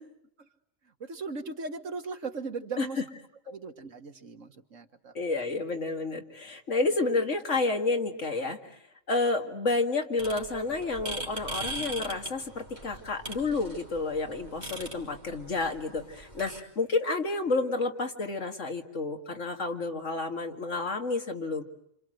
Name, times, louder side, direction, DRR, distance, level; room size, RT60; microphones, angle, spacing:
voice 1, 1.0-3.0 3.5-5.2, right 4 dB, 80° right, 6 dB, 2.0 m, -38 dB
voice 2, 5.1-8.8 9.1-21.6, left 3 dB, 75° left, 4 dB, 2.4 m, -30 dB
sound 1, 10.2-16.6, right 1 dB, 35° right, 3.2 m, -41 dB
28.0 x 27.0 x 7.8 m, 0.75 s
omnidirectional pair, 1.3 m